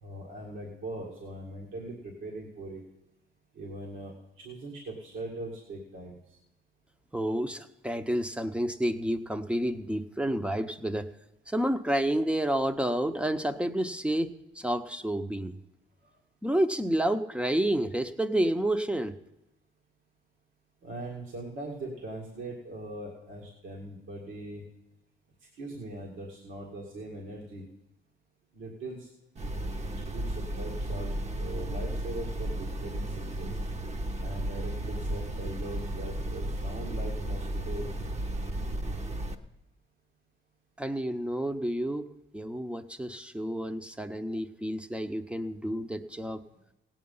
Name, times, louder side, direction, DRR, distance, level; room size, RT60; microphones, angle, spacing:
voice 1, 0.0-2.8 3.5-6.2 16.0-16.2 20.8-24.6 25.5-27.6 28.5-29.1 30.1-33.6 34.2-37.9, right 1 dB, 75° right, -2 dB, 2.1 m, -41 dB
voice 2, 7.1-11.1 11.5-15.6 16.4-19.1 40.8-42.1 42.3-46.4, right 1 dB, 5° right, 9 dB, 0.7 m, -30 dB
sound 1, 29.4-39.4, right 1 dB, 35° right, 1.0 m, -34 dB
16.5 x 8.7 x 5.5 m, 0.95 s
cardioid pair, 90°, 20 cm